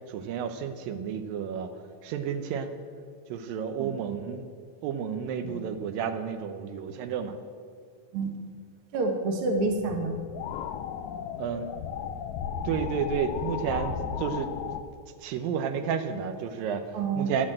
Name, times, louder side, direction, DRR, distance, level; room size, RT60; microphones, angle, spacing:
voice 1, 0.1-1.7 2.0-2.7 3.3-4.5 4.8-7.4 11.4-11.7 12.6-14.5 15.2-16.8 17.2-17.5, right 7 dB, 80° right, 8 dB, 2.6 m, -31 dB
voice 2, 8.9-10.1 16.9-17.3, right 3 dB, 55° right, 3 dB, 1.6 m, -28 dB
sound 1, 9.6-14.8, left 8 dB, 80° left, 1.7 m, -35 dB
10.5 x 10.0 x 7.7 m, 2.3 s
omnidirectional pair, 4.0 m